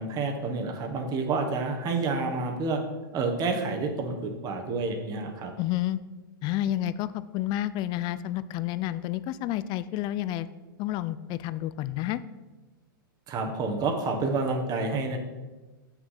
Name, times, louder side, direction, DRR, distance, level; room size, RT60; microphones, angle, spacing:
voice 1, 0.0-2.8 3.1-5.5 13.3-15.2, right 3 dB, 35° right, 4 dB, 1.5 m, -29 dB
voice 2, 5.6-6.0 6.4-10.5 10.8-12.2, left 13 dB, 40° left, 15 dB, 0.4 m, -30 dB
7.8 x 6.0 x 5.7 m, 1.2 s
hypercardioid pair, 110°, 12 cm